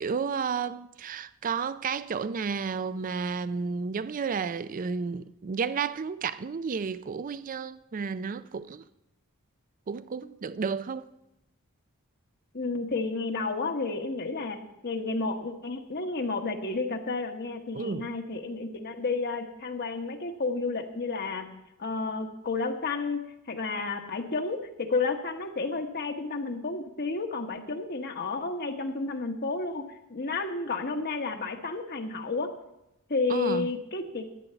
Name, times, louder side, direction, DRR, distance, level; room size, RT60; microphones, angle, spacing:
voice 1, 0.0-8.8 9.9-11.1 17.7-18.1 33.3-33.7, right 5 dB, 40° right, 0.4 m, -32 dB
voice 2, 12.5-14.6 14.8-21.5 21.8-23.2 23.5-32.5 33.1-34.3, left 3 dB, 45° left, 1.2 m, -31 dB
12.5 x 8.6 x 6.9 m
head